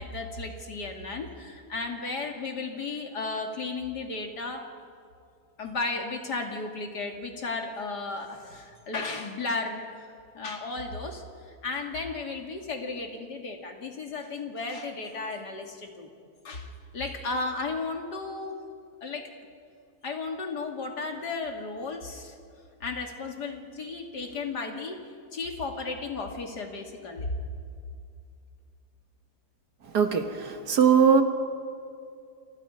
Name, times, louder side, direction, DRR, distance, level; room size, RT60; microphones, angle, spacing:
voice 1, 0.0-4.7 5.6-10.1 10.3-16.1 16.4-18.6 19.0-19.3 20.0-22.4 22.8-27.3, left 3 dB, 80° left, 2 dB, 3.0 m, -34 dB
voice 2, 29.9-31.2, right 6 dB, 75° right, 6 dB, 1.9 m, -20 dB
29.0 x 25.5 x 5.6 m, 2.4 s
omnidirectional pair, 1.8 m